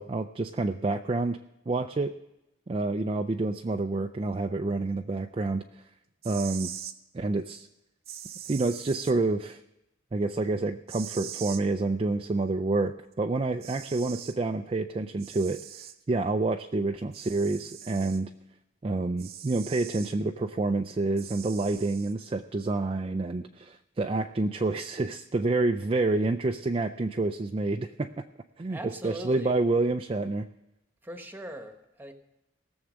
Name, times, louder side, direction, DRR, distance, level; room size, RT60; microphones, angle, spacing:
voice 1, 0.0-1.4 1.7-2.1 2.7-5.6 6.2-6.7 7.1-7.7 8.5-9.6 10.1-15.6 16.1-18.3 18.8-28.1 28.6-30.5, right 3 dB, 30° right, 6 dB, 0.4 m, -28 dB
sound 1, 6.1-7.0 8.1-9.1 10.9-11.6 13.1-13.2 13.6-14.4 15.2-16.0 17.1-18.2 19.2-20.2 21.2-22.1, right 10 dB, 55° right, 0.8 m, -42 dB
voice 2, 28.7-29.6 31.0-32.1, right 1 dB, 10° right, 6 dB, 1.2 m, -40 dB
18.0 x 7.1 x 6.3 m, 0.91 s
head